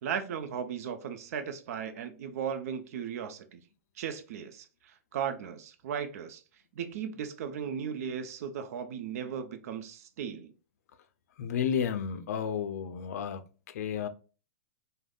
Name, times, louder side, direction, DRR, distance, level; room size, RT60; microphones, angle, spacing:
voice 1, 0.0-3.6 4.0-6.4 6.7-10.5, right 7 dB, 65° right, 0.5 m, -36 dB
voice 2, 11.4-13.4 13.7-14.1, left 8 dB, 70° left, 0.4 m, -32 dB
3.4 x 2.1 x 2.2 m
hypercardioid pair, 140°, 9 cm